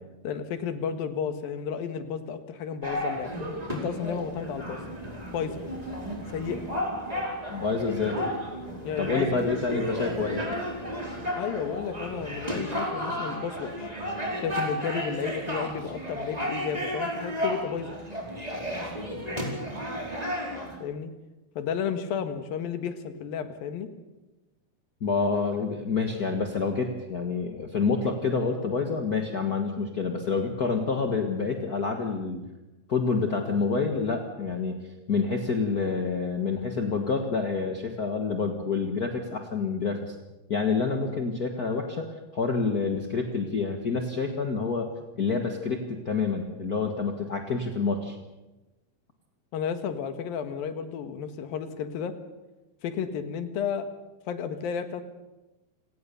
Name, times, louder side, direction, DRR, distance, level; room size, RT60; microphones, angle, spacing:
voice 1, 0.2-3.3 3.7-4.8 5.3-5.6 6.3-6.6 8.8-9.3 11.3-13.9 14.4-17.9 20.8-21.1 21.6-23.9 49.5-52.1 52.8-53.9 54.3-55.0, left 7 dB, 70° left, 9 dB, 3.3 m, -32 dB
sound 1, 2.8-20.7, equal, 10° right, 4.7 m, -33 dB
voice 2, 7.5-8.2 9.0-10.5 25.0-32.4 32.9-40.1 40.5-44.9 45.2-48.2, left 4 dB, 50° left, 4 dB, 1.1 m, -28 dB
28.0 x 18.0 x 7.0 m, 1.0 s
omnidirectional pair, 4.4 m